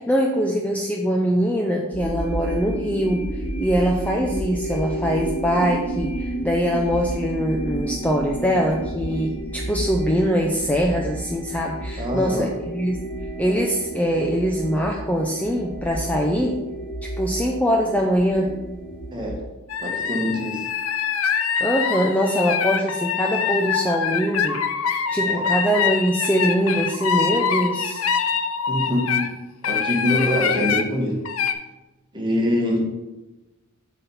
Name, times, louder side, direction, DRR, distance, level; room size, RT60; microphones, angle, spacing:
voice 1, 0.0-13.0 13.4-16.6 17.0-18.5 21.6-28.0, equal, 5° left, 0 dB, 0.5 m, -23 dB
sound 1, 1.9-19.4, right 1 dB, 80° left, 1.8 m, -31 dB
voice 2, 12.0-12.5 19.1-19.5 19.8-20.7 25.2-25.5 28.7-29.3 29.6-31.2 32.1-32.8, equal, 20° right, -1 dB, 1.4 m, -24 dB
sound 2, 19.7-29.3 29.6-30.8 31.3-31.5, left 7 dB, 65° left, 0.5 m, -24 dB
7.6 x 4.2 x 5.6 m, 1.1 s
head